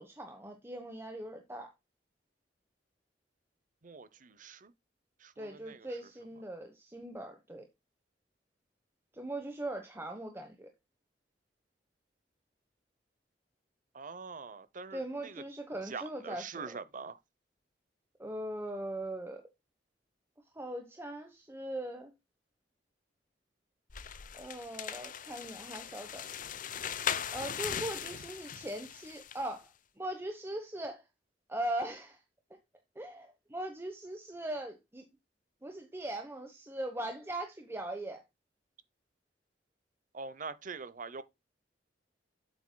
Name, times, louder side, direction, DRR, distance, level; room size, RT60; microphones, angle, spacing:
voice 1, 0.0-1.7 5.4-7.7 9.1-10.7 14.9-16.8 18.2-19.4 20.5-22.1 24.3-26.3 27.3-29.7 30.0-31.0 31.5-32.2 32.9-35.1 35.6-38.2, right 1 dB, 15° right, 1.1 m, -40 dB
voice 2, 3.8-4.7 5.2-5.9 13.9-15.4 15.8-17.2 40.1-41.2, right 4 dB, 45° right, 0.7 m, -44 dB
sound 1, 23.9-29.5, left 8 dB, 50° left, 0.7 m, -39 dB
8.3 x 7.9 x 2.2 m
head